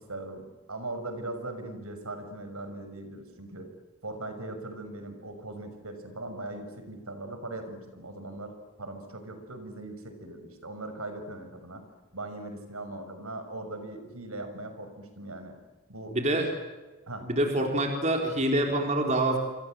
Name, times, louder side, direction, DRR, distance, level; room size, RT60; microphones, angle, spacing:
voice 1, 0.0-3.7 4.0-8.5 8.8-11.8 12.1-15.6 15.9-16.2 17.1-17.3, right 2 dB, 75° right, 7 dB, 6.1 m, -39 dB
voice 2, 16.1-16.5 17.2-19.4, right 1 dB, 30° right, 3 dB, 4.3 m, -26 dB
27.0 x 27.0 x 7.8 m, 1.2 s
head